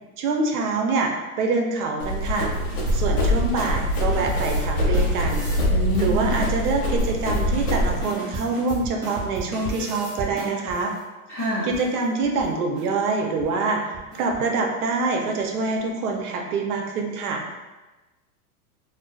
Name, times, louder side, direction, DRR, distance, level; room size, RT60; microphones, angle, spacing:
voice 1, 0.2-2.5 2.9-5.5 6.0-10.9 11.6-17.4, right 3 dB, 75° right, 2 dB, 0.6 m, -25 dB
Run, 2.0-8.0, left 1 dB, 90° left, 0.9 m, -24 dB
sound 1, 2.5-5.7 5.9-10.9 11.4-11.5 11.7-11.9 12.2-12.5 12.7-12.8 13.3-13.5 13.9-14.4, right 2 dB, 20° right, 0.8 m, -34 dB
voice 2, 5.7-6.3 11.3-11.7, equal, 10° left, -17 dB, 0.3 m, -26 dB
2.5 x 2.3 x 2.2 m, 1.1 s
supercardioid pair, 155°, 45 cm